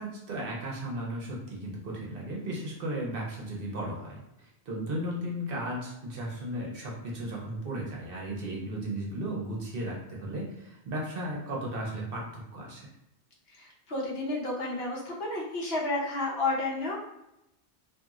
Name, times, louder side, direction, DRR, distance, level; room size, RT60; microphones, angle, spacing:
voice 1, 0.0-12.9, right 1 dB, 60° right, -2 dB, 0.8 m, -35 dB
voice 2, 13.5-17.0, left 2 dB, 60° left, -4 dB, 0.9 m, -31 dB
2.8 x 2.6 x 2.4 m, 0.86 s
omnidirectional pair, 1.2 m